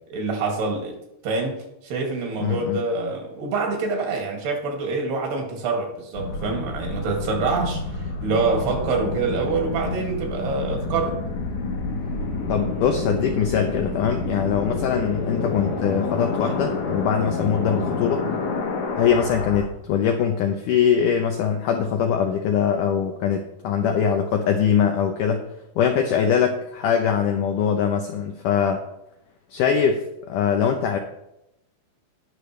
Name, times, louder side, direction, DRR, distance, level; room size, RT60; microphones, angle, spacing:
voice 1, 0.1-1.0 1.2-11.2, right 4 dB, 80° right, 1 dB, 4.1 m, -26 dB
voice 2, 2.4-2.8 12.5-18.2 19.0-25.4 25.8-28.8 29.5-31.0, left 7 dB, 80° left, 4 dB, 1.8 m, -22 dB
sound 1, 6.1-19.7, left 3 dB, 65° left, 2.0 m, -28 dB
19.0 x 6.6 x 3.2 m, 0.86 s
omnidirectional pair, 4.7 m